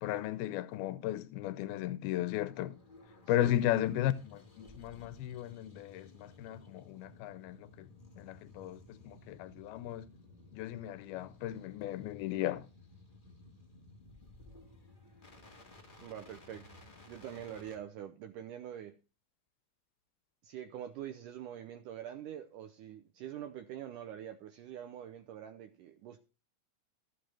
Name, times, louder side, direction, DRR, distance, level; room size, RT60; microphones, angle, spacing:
voice 1, 0.0-2.8 3.3-7.9 8.2-10.1 10.5-12.7, left 13 dB, 85° left, 2.6 m, -35 dB
sound 1, 2.5-17.8, left 2 dB, 25° left, 1.1 m, -57 dB
voice 2, 16.0-19.0 20.4-26.2, right 10 dB, 75° right, 2.1 m, -45 dB
14.5 x 8.0 x 4.4 m
omnidirectional pair, 4.3 m